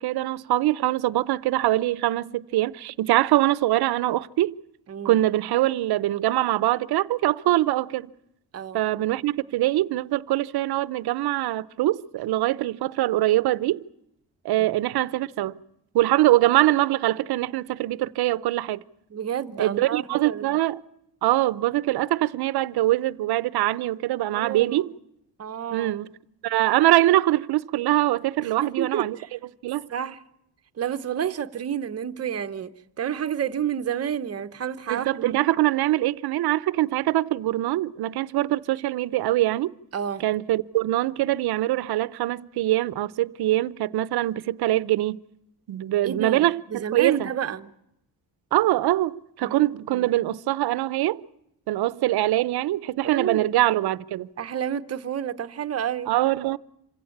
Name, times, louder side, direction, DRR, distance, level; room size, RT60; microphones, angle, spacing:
voice 1, 0.0-4.5 5.0-8.1 8.7-13.8 14.4-15.6 15.9-18.8 19.6-20.8 21.2-24.9 25.7-26.1 26.4-29.2 29.6-29.9 34.9-39.7 40.2-45.2 45.7-47.3 48.5-51.2 51.7-54.3 56.1-56.6, right 15 dB, 75° right, 0.8 m, -23 dB
voice 2, 4.9-5.2 8.5-8.8 14.6-15.0 19.1-20.6 24.3-24.9 25.4-25.9 28.4-29.3 29.9-30.2 30.8-32.7 33.0-35.4 39.9-40.3 46.0-47.7 49.4-49.6 49.9-50.1 53.0-53.5 54.4-56.1, right 9 dB, 40° right, 1.0 m, -30 dB
27.0 x 16.0 x 8.5 m
cardioid pair, 155°, 38 cm